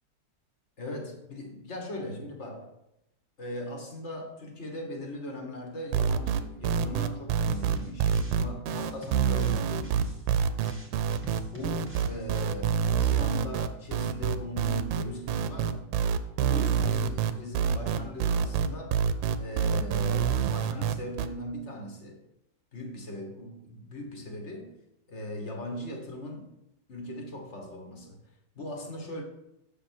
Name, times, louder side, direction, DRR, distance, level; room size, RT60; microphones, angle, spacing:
voice 1, 0.8-2.7 3.4-10.0 11.5-15.9 16.4-19.1 19.4-22.2 22.7-24.7 25.1-26.5 26.9-28.2 28.5-29.2, left 1 dB, 40° left, 1.6 m, -39 dB
sound 1, 5.9-21.3, right 7 dB, 90° right, 1.3 m, -26 dB
sound 2, 7.4-8.4 8.7-12.5, right 2 dB, 10° right, 1.0 m, -45 dB
7.9 x 5.8 x 4.4 m
omnidirectional pair, 2.1 m